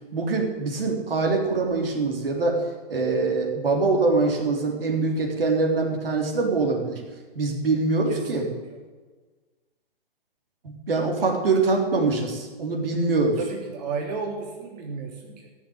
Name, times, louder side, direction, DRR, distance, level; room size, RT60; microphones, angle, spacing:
voice 1, 0.1-2.6 2.9-7.0 7.4-8.5 10.6-13.4, right 3 dB, 70° right, 1 dB, 3.7 m, -24 dB
voice 2, 8.1-8.8 13.4-15.5, right 4 dB, 45° right, -1 dB, 3.2 m, -33 dB
15.0 x 7.3 x 8.9 m, 1.3 s
hypercardioid pair, 140°, 30 cm